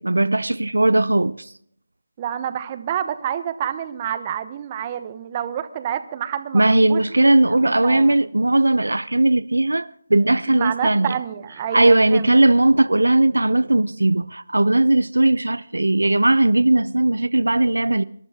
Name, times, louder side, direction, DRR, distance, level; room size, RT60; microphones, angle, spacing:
voice 1, 0.0-1.5 6.5-11.1 11.7-18.0, right 2 dB, 85° right, 0.5 m, -18 dB
voice 2, 2.2-7.0 7.5-8.2 10.5-12.4, right 10 dB, 25° right, 1.1 m, -28 dB
26.0 x 11.5 x 3.7 m
figure-of-eight pair, 160°, 0 cm